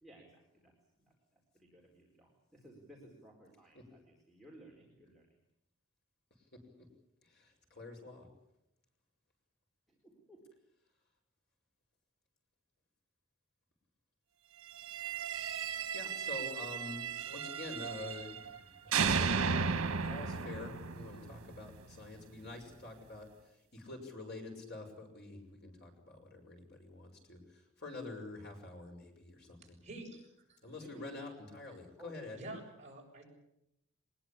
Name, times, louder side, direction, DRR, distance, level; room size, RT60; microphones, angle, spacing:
voice 1, 0.0-1.1 1.5-5.3 9.9-10.5 30.8-31.5 32.0-32.3, right 1 dB, ahead, -1 dB, 4.2 m, -58 dB
voice 2, 7.2-8.3 15.9-19.4 20.0-29.8 30.6-32.5, left 2 dB, 50° left, 2 dB, 5.9 m, -47 dB
sound 1, 14.8-18.6 18.9-21.9, right 5 dB, 85° right, 1.3 m, -35 dB
voice 3, 29.6-30.6 32.4-33.2, right 2 dB, 30° right, -1 dB, 7.2 m, -48 dB
23.0 x 21.0 x 8.7 m, 0.82 s
head